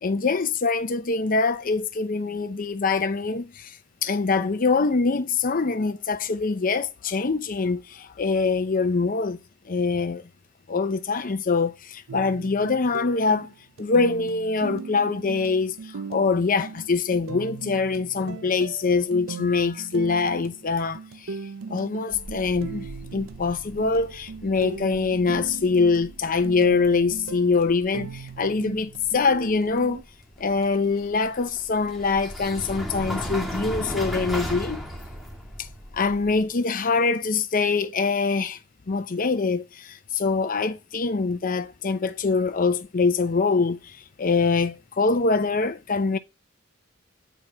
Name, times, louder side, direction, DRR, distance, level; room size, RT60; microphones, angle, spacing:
voice 1, 0.0-3.7 4.0-9.4 9.7-10.2 10.7-13.5 13.8-15.7 16.1-21.0 21.7-22.9 23.1-30.0 30.4-34.8 35.9-38.6 38.9-43.8 44.2-46.2, left 4 dB, 45° left, 0.6 m, -24 dB
sound 1, 12.1-30.0, right 5 dB, 85° right, 0.5 m, -39 dB
sound 2, 22.1-36.5, equal, ahead, 1.6 m, -37 dB
9.0 x 4.7 x 7.3 m
head